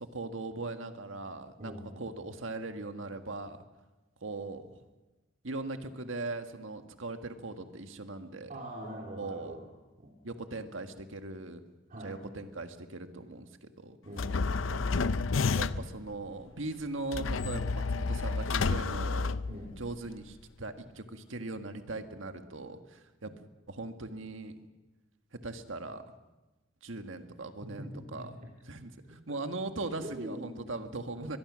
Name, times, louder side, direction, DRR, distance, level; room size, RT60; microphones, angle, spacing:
voice 1, 0.0-3.6 4.2-4.8 5.4-8.5 9.2-9.6 10.2-11.6 12.0-14.0 15.6-19.4 19.8-23.3 23.7-24.6 25.3-26.0 26.8-28.3 28.6-31.4, right 2 dB, 85° right, 7 dB, 1.7 m, -40 dB
voice 2, 1.6-2.1 8.5-9.6 11.9-12.2 14.0-15.1 19.5-19.7 27.6-28.3 30.0-30.6, equal, 45° right, -3 dB, 3.3 m, -43 dB
sound 1, 14.2-16.0 17.1-20.0, left 4 dB, 85° left, 0.6 m, -30 dB
23.5 x 21.5 x 6.3 m, 1.1 s
head